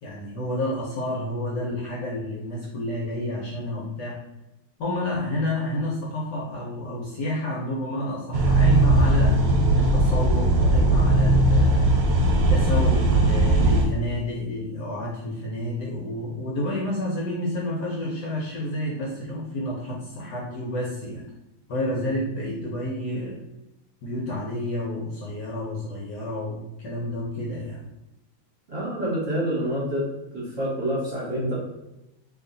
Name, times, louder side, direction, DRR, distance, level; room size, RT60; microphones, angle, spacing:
voice 1, 0.0-4.2 4.8-9.4 9.8-12.0 12.5-21.3 21.7-23.4 24.0-27.8, left 1 dB, 65° left, -4 dB, 1.1 m, -30 dB
sound 1, 8.3-13.8, right 1 dB, 85° right, 1.5 m, -19 dB
voice 2, 28.7-30.1 30.3-31.5, equal, 45° right, -7 dB, 1.1 m, -27 dB
3.0 x 2.7 x 3.8 m, 0.93 s
omnidirectional pair, 2.4 m